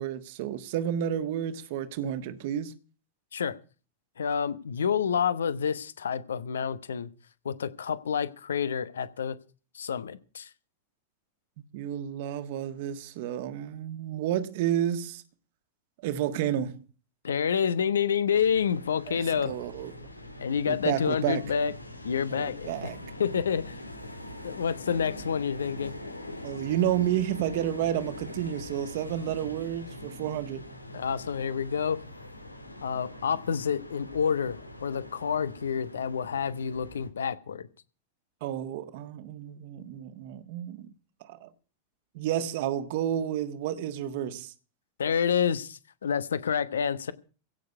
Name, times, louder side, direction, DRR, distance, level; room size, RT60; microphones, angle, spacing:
voice 1, 0.0-2.8 11.7-15.2 16.0-16.8 19.1-20.0 20.7-21.4 22.3-23.0 26.4-30.7 38.4-40.9 41.3-41.5 42.1-44.5, right 10 dB, 50° right, 1.6 m, -31 dB
voice 2, 4.2-7.1 7.4-9.4 9.7-10.5 17.2-19.5 20.4-21.7 22.0-22.7 23.2-23.8 24.4-25.9 30.9-32.0 32.8-37.7 45.0-47.1, left 7 dB, 70° left, 1.1 m, -28 dB
sound 1, 18.3-37.1, left 1 dB, 85° left, 1.9 m, -43 dB
16.5 x 6.7 x 8.1 m
figure-of-eight pair, 90°, 0 cm